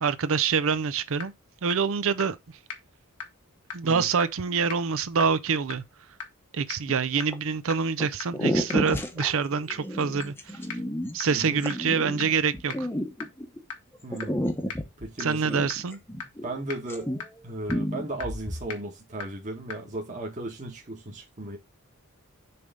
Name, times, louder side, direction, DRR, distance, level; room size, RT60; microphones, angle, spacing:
voice 1, 0.0-1.3 1.6-2.4 3.7-5.8 6.5-10.6 11.1-12.9 15.2-16.0, right 5 dB, 65° right, 0.6 m, -26 dB
sound 1, 1.2-1.3 1.7-1.8 2.2-2.3 2.7-2.8 3.2-3.3 3.7-3.8 4.2-4.3 4.7-4.8 5.2-5.3 5.7-5.8 6.2-6.3 6.7-6.8 7.2-7.3 7.7-7.8 8.2-8.3 8.7-8.8 9.2-9.3 9.7-9.8 10.2-10.3 10.7-10.8 11.2-11.3 11.7-11.8 12.2-12.3 12.7-12.8 13.2-13.3 13.7-13.8 14.2-14.3 14.7-14.8 15.2-15.3 15.7-15.8 16.2-16.3 16.7-16.8 17.2-17.3 17.7-17.8 18.2-18.3 18.7-18.8 19.2-19.3 19.7-19.8, left 6 dB, 85° left, 1.3 m, -35 dB
sound 2, 6.9-7.3 8.0-8.1 8.3-13.6 14.1-16.6 16.8-17.4 17.7-18.7, equal, 10° left, 0.9 m, -31 dB
voice 2, 11.3-11.6 14.0-14.4 15.0-15.6 16.4-17.1 17.4-21.6, right 2 dB, 35° right, 1.7 m, -35 dB
6.8 x 3.5 x 5.1 m
head